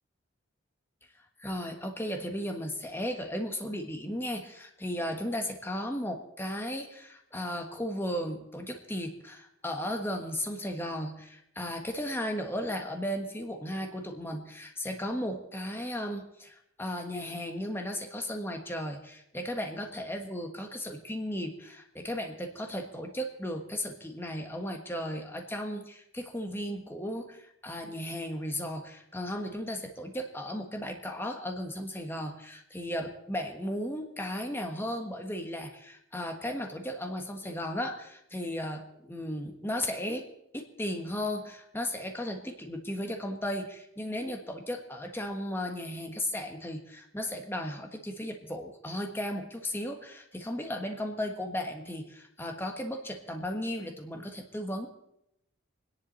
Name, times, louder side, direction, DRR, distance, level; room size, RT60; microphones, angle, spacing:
voice 1, 1.4-40.3 40.5-54.9, equal, 10° left, 4 dB, 1.3 m, -35 dB
25.5 x 10.5 x 4.2 m, 0.80 s
head